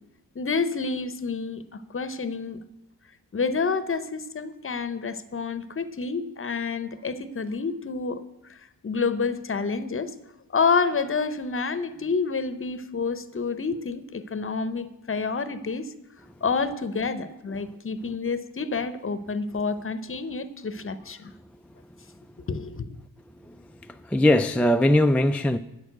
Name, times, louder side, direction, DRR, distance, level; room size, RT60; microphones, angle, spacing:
voice 1, 0.3-2.6 3.3-8.2 8.5-8.6 8.8-10.1 10.5-15.9 16.4-21.3 22.5-23.0, left 4 dB, 35° left, 0.8 m, -28 dB
voice 2, 23.4-25.6, left 1 dB, 5° left, 0.3 m, -21 dB
8.5 x 6.5 x 7.8 m
cardioid pair, 60°, 37 cm